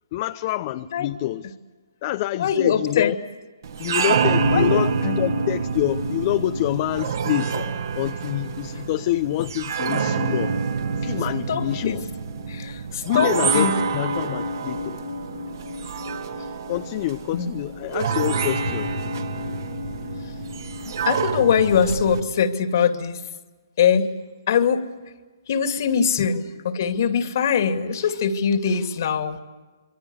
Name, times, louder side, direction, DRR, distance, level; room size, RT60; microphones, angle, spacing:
voice 1, 0.1-1.5 2.0-3.2 3.8-7.6 7.9-10.5 11.0-12.0 13.0-15.0 16.7-18.9 26.2-26.3, left 15 dB, 35° left, 0.7 m, -26 dB
voice 2, 2.4-3.1 4.5-5.2 11.5-12.0 12.5-13.7 17.3-17.6 20.9-23.2 23.8-24.1 24.5-24.8 25.5-29.4, left 7 dB, 50° left, 2.4 m, -22 dB
sound 1, 3.6-22.2, right 4 dB, 65° right, 2.8 m, -27 dB
27.0 x 23.5 x 8.1 m
hypercardioid pair, 145°, 2 cm